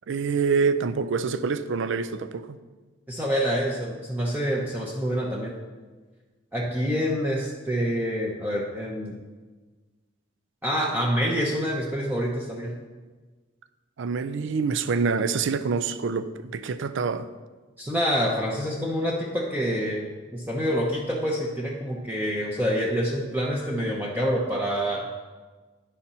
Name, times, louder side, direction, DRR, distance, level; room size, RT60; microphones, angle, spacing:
voice 1, 0.1-2.6 14.0-17.3, right 5 dB, 65° right, 0.4 m, -26 dB
voice 2, 3.1-5.6 6.5-9.1 10.6-12.8 17.8-25.1, equal, 10° right, 0.8 m, -27 dB
9.8 x 4.3 x 5.4 m
head